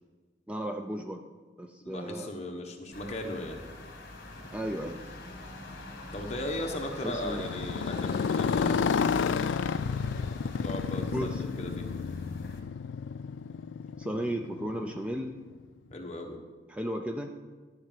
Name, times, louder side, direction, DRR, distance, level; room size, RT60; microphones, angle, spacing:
voice 1, 0.5-1.2 1.6-2.3 4.5-5.0 7.0-7.4 11.1-11.4 14.0-15.4 16.7-17.3, equal, 5° right, 4 dB, 0.5 m, -34 dB
voice 2, 1.8-3.6 6.1-9.2 10.6-11.9 15.9-16.4, left 1 dB, 35° left, 2 dB, 1.3 m, -37 dB
sound 1, 2.9-12.6, left 2 dB, 55° left, 1.9 m, -44 dB
Motorcycle, 7.2-15.3, left 6 dB, 80° left, 0.4 m, -31 dB
13.0 x 5.0 x 7.4 m, 1.3 s
head